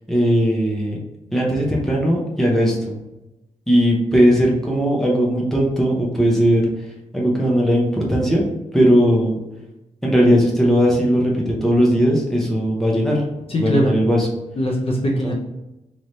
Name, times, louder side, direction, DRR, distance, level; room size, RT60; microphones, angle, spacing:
voice 1, 0.1-1.0 1.3-3.0 3.7-6.7 7.1-8.4 8.7-9.4 10.0-13.2 13.6-14.3 15.2-15.3, equal, ahead, -3 dB, 0.8 m, -18 dB
voice 2, 13.5-13.9 14.6-15.3, equal, 45° left, -2 dB, 0.7 m, -20 dB
3.2 x 2.9 x 3.9 m, 0.96 s
wide cardioid pair, 165°, 14 cm